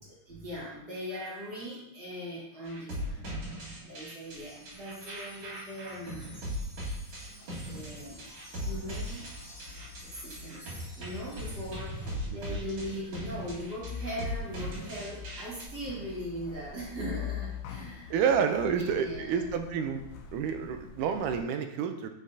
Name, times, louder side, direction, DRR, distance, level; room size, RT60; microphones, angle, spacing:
voice 1, 0.3-3.2 3.8-6.4 7.4-8.3 8.6-9.3 10.0-10.7 10.9-18.1 18.5-19.4, equal, 40° right, -5 dB, 1.7 m, -40 dB
sound 1, 2.7-15.6, equal, 55° right, 2.9 m, -39 dB
Wind chime, 4.2-12.4, equal, 15° left, 0.9 m, -53 dB
sound 2, 7.9-21.4, left 7 dB, 75° left, 2.1 m, -45 dB
voice 2, 12.3-12.6 18.1-20.0 20.3-22.1, right 7 dB, 80° right, 7 dB, 2.0 m, -29 dB
8.2 x 5.8 x 2.7 m, 0.80 s
omnidirectional pair, 3.8 m